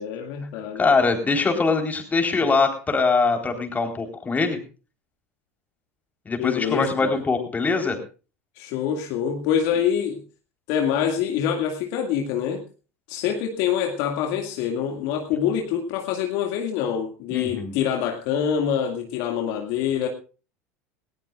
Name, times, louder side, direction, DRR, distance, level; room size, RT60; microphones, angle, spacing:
voice 1, 0.0-0.8 6.4-7.2 8.6-10.2 10.7-12.6 13.1-20.1, left 8 dB, 60° left, 3 dB, 2.2 m, -25 dB
voice 2, 0.8-4.6 6.3-8.0 17.3-17.7, left 4 dB, 20° left, 4 dB, 4.0 m, -22 dB
19.0 x 18.5 x 2.5 m, 0.34 s
hypercardioid pair, 80°, 7 cm